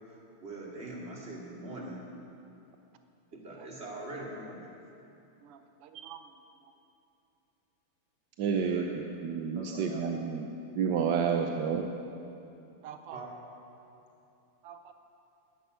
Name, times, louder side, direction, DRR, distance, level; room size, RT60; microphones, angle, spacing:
voice 1, 0.0-2.0 3.4-4.7 8.5-9.0 9.5-10.1 10.6-10.7 11.1-11.2 13.1-13.3, right 1 dB, 30° right, -3 dB, 2.7 m, -42 dB
voice 2, 5.4-6.4 12.8-13.2 14.6-14.9, right 9 dB, 90° right, 8 dB, 1.7 m, -47 dB
voice 3, 8.4-8.9 9.2-10.5 10.8-11.9, right 7 dB, 65° right, 3 dB, 1.2 m, -29 dB
12.0 x 10.5 x 9.3 m, 2.7 s
omnidirectional pair, 2.4 m